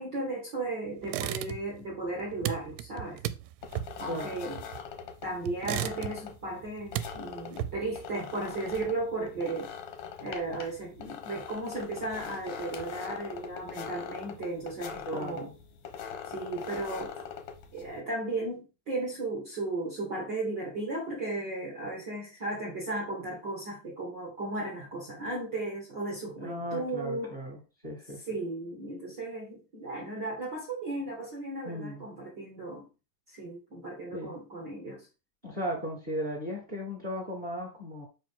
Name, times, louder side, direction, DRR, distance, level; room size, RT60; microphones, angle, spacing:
voice 1, 0.0-3.2 4.0-4.6 5.2-9.7 10.2-15.5 16.2-17.2 17.7-27.4 28.3-32.8 33.3-35.1, right 2 dB, 45° right, 1.4 m, -35 dB
sound 1, 1.0-1.8 2.1-5.0 5.5-6.4 6.7-8.0, right 13 dB, 90° right, 2.6 m, -35 dB
sound 2, 3.6-18.0, left 7 dB, 70° left, 1.6 m, -42 dB
voice 2, 15.0-15.5 26.4-28.2 31.6-32.0 34.1-34.4 35.4-38.1, equal, 20° right, 1.4 m, -36 dB
7.4 x 4.9 x 3.7 m
omnidirectional pair, 4.6 m